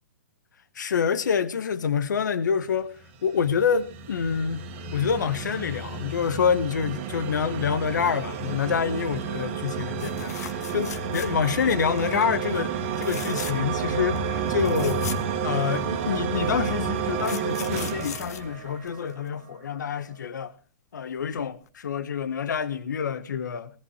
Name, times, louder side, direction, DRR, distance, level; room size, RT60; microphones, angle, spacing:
voice 1, 0.7-2.9 3.2-4.6 4.9-15.0 15.4-20.5 20.9-23.7, left 7 dB, 85° left, 1.5 m, -27 dB
sound 1, 3.0-19.1, right 6 dB, 45° right, 1.9 m, -31 dB
sound 2, 10.0-11.6 12.0-12.3 12.9-13.8 14.2-14.3 14.5-16.0 16.7-19.3 21.2-21.4 21.7-21.8, left 9 dB, 60° left, 1.4 m, -39 dB
19.0 x 14.5 x 3.3 m
hypercardioid pair, 155°, 10 cm